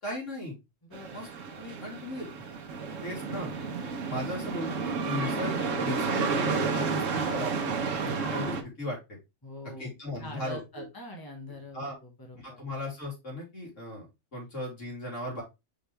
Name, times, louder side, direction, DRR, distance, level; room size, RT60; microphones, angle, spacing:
voice 1, 0.0-0.6 1.1-1.3 1.6-2.5 3.0-3.5 4.1-9.0 9.8-10.9 11.7-12.0 12.4-14.1 14.3-15.4, left 1 dB, 75° left, -2 dB, 3.6 m, -37 dB
voice 2, 0.8-1.2 3.7-3.9 9.4-9.9 10.2-12.6, left 2 dB, 15° left, 1 dB, 1.6 m, -44 dB
sound 1, 0.9-8.6, right 5 dB, 90° right, 1.4 m, -31 dB
5.7 x 5.6 x 3.3 m, 0.24 s
omnidirectional pair, 1.3 m